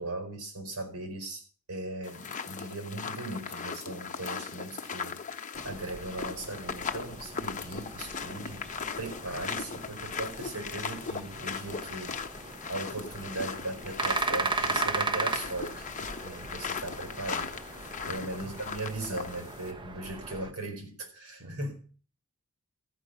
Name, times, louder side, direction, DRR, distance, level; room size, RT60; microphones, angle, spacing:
voice 1, 0.0-1.4 1.7-5.2 5.6-8.7 9.0-12.2 12.7-21.7, right 2 dB, 85° right, 4 dB, 4.9 m, -38 dB
sound 1, 2.0-19.7, left 6 dB, 35° left, 0.9 m, -38 dB
sound 2, 5.5-20.5, right 3 dB, 20° right, 0.7 m, -37 dB
voice 2, 18.0-18.6 21.4-21.7, equal, 55° right, 4 dB, 1.9 m, -47 dB
14.5 x 5.3 x 8.2 m, 0.40 s
head